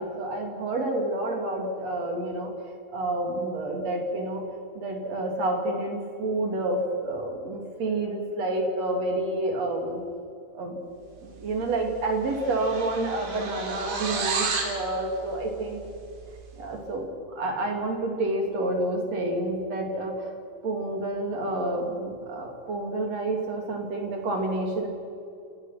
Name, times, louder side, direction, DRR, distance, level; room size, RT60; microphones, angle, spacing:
voice 1, 0.0-2.5 2.9-4.4 4.8-10.0 10.5-10.8 11.2-15.8 16.6-17.1 17.4-20.3 20.6-24.9, right 2 dB, 40° right, 1 dB, 3.5 m, -29 dB
bass guitar pitch, 11.6-11.8 12.1-14.8, right 4 dB, 65° right, 5.2 m, -31 dB
29.5 x 19.0 x 6.0 m, 2.6 s
omnidirectional pair, 5.5 m